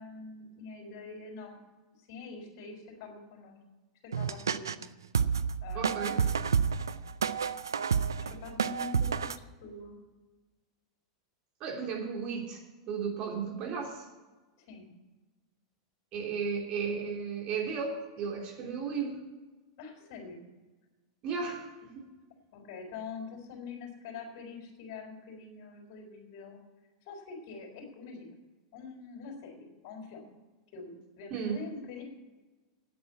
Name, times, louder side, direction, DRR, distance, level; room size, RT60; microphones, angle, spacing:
voice 1, 0.0-1.6 2.0-3.6 4.0-4.9 5.6-6.6 8.1-9.3 9.6-10.0 14.6-14.9 19.8-20.4 22.5-26.6 27.1-28.4 28.7-30.3 30.7-32.0, left 4 dB, 55° left, 2 dB, 3.9 m, -45 dB
sound 1, 4.1-4.8 5.1-9.4, right 6 dB, 80° right, 0.5 m, -29 dB
voice 2, 5.7-6.2 11.6-12.6 12.9-14.0 16.1-19.2 21.2-22.0 31.3-31.6, right 6 dB, 45° right, 0 dB, 3.3 m, -34 dB
9.5 x 8.6 x 8.5 m, 1.2 s
hypercardioid pair, 90°, 2 cm